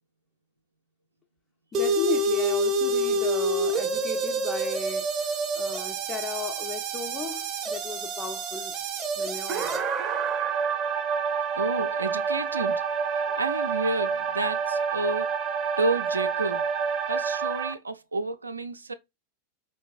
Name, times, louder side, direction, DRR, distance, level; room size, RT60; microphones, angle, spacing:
voice 1, 1.7-8.8 9.2-9.8 13.2-13.3, left 6 dB, 20° left, 0.4 m, -36 dB
sound 1, 1.7-17.7, right 4 dB, 25° right, 0.6 m, -28 dB
voice 2, 11.6-12.8 13.1-15.3 15.8-16.7 17.1-18.9, right 3 dB, 80° right, 0.3 m, -30 dB
4.4 x 2.5 x 2.3 m
figure-of-eight pair, 90°, 0 cm